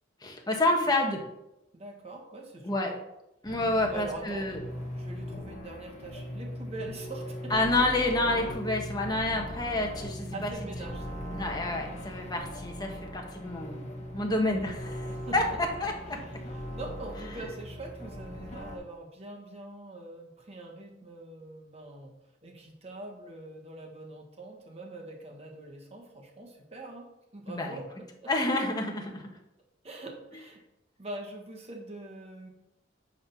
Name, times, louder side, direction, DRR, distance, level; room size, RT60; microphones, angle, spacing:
voice 1, 0.2-1.2 2.6-2.9 3.4-4.6 7.5-10.5 11.3-13.9 14.1-14.8 15.3-16.2 27.5-27.8 28.3-29.3, left 2 dB, 20° left, 1 dB, 1.3 m, -28 dB
voice 2, 1.7-3.0 3.9-4.4 5.0-7.5 10.3-11.2 14.4-15.4 16.1-16.4 16.7-22.2 22.4-27.1 27.3-28.3 29.8-30.6 31.0-32.5, right 2 dB, 35° right, 1 dB, 1.6 m, -43 dB
sound 1, 3.4-18.8, equal, 40° left, 1.3 m, -39 dB
8.9 x 3.9 x 5.8 m, 0.88 s
head